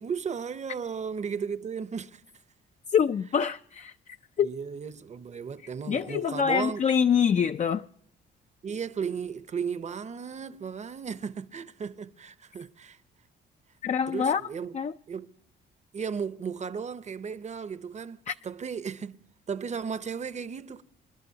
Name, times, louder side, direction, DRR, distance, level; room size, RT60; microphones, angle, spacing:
voice 1, 0.0-2.2 4.4-6.8 8.6-13.0 14.1-14.7 15.1-15.3 15.9-19.2 19.5-20.8, right 6 dB, 35° right, 0.8 m, -35 dB
voice 2, 2.9-3.9 4.4-4.5 5.9-7.9 13.8-14.4 14.7-14.9 18.3-18.4, left 7 dB, 35° left, 0.4 m, -25 dB
28.0 x 11.5 x 2.8 m
cardioid pair, 90°, 20 cm